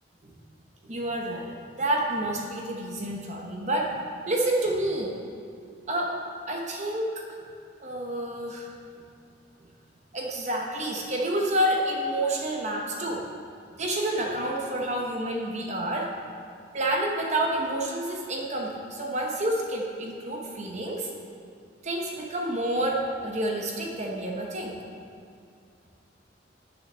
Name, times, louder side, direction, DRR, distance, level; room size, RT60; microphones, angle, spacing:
voice 1, 0.8-3.9 4.3-5.1 5.9-6.1 6.5-7.3 7.8-8.7 10.1-13.2 13.8-16.1 16.7-21.1 21.8-24.8, right 1 dB, 40° right, 0 dB, 0.8 m, -29 dB
7.1 x 6.4 x 6.2 m, 2.4 s
head